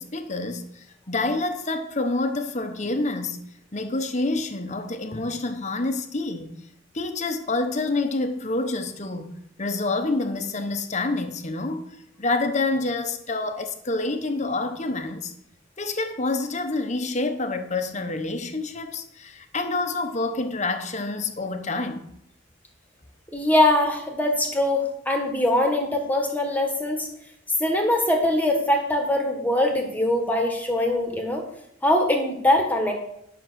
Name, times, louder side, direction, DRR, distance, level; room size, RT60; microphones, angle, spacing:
voice 1, 0.0-3.4 3.7-6.6 6.9-11.9 12.2-15.3 15.8-22.1, left 2 dB, 35° left, 1.0 m, -27 dB
voice 2, 23.3-27.1 27.6-31.4 31.8-32.9, left 1 dB, 10° left, 1.7 m, -22 dB
11.0 x 6.3 x 6.4 m
head